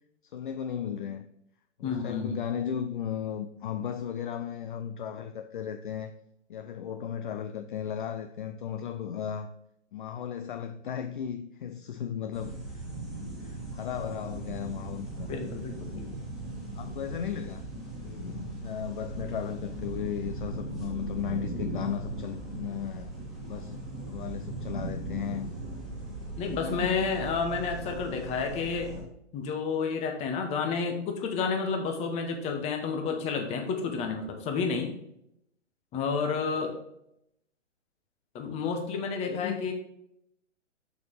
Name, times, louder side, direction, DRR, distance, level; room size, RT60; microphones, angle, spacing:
voice 1, 0.2-1.3 1.8-6.1 6.5-9.5 9.9-12.8 13.1-15.3 16.8-17.6 18.0-23.1 23.5-25.5 26.4-27.0 39.3-39.7, left 9 dB, 45° left, 0.5 m, -36 dB
voice 2, 1.8-2.4 15.3-16.1 26.4-28.9 29.3-34.9 35.9-36.8 38.3-39.7, left 5 dB, 15° left, 1.0 m, -30 dB
sound 1, 12.3-29.0, right 2 dB, ahead, 2.3 m, -38 dB
6.8 x 6.6 x 3.4 m
figure-of-eight pair, 125°, 37 cm